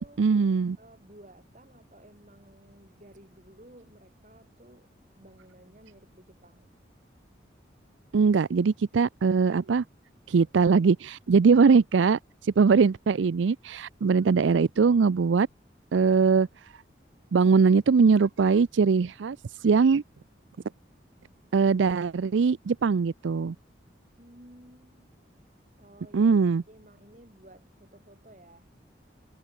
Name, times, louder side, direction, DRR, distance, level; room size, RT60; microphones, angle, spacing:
voice 1, 0.2-0.8 8.1-9.8 10.3-15.5 15.9-16.5 17.3-19.4 19.6-20.0 21.5-23.5 26.1-26.6, right 5 dB, 85° right, 0.4 m, -21 dB
voice 2, 0.8-6.7 24.2-25.1 25.8-26.4 26.7-28.7, right 1 dB, 40° right, 3.7 m, -54 dB
head